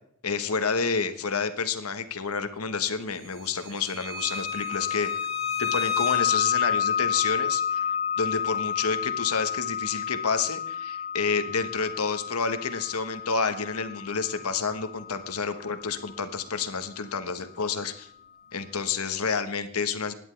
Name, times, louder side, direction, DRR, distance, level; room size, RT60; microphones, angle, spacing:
voice 1, 0.2-5.1 5.6-7.9 8.2-18.1 18.5-20.1, left 5 dB, 90° left, 10 dB, 1.2 m, -29 dB
sound 1, 3.8-16.4, left 7 dB, 60° right, 6.4 m, -30 dB
17.0 x 10.5 x 3.3 m, 0.68 s
head